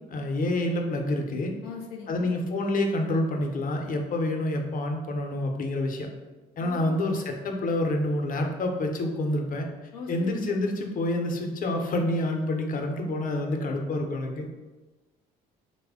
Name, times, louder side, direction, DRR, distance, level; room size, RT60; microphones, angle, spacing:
voice 1, 0.1-1.5 2.1-6.1 6.6-9.7 10.1-14.5, left 1 dB, 45° left, 3 dB, 0.6 m, -28 dB
voice 2, 1.6-2.3 6.6-6.9 9.9-10.4, left 5 dB, 85° left, 2 dB, 0.6 m, -39 dB
3.2 x 2.1 x 3.5 m, 1.2 s
hypercardioid pair, 65°, 20 cm